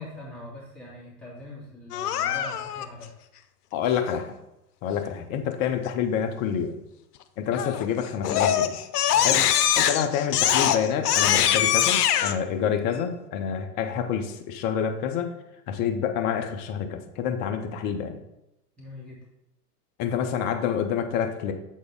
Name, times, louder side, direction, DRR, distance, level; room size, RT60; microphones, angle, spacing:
voice 1, 0.0-3.1 9.1-9.4 18.8-19.3, left 2 dB, ahead, -8 dB, 2.4 m, -42 dB
Crying sobbing, 1.9-2.9 7.5-7.9 8.2-12.3, left 10 dB, 70° left, 0.7 m, -22 dB
voice 2, 3.7-4.3 4.8-6.8 7.4-8.7 9.2-9.4 9.8-15.3 15.7-18.2 20.0-21.5, left 8 dB, 25° left, 6 dB, 0.4 m, -27 dB
7.8 x 4.2 x 3.5 m, 0.89 s
hypercardioid pair, 120°, 48 cm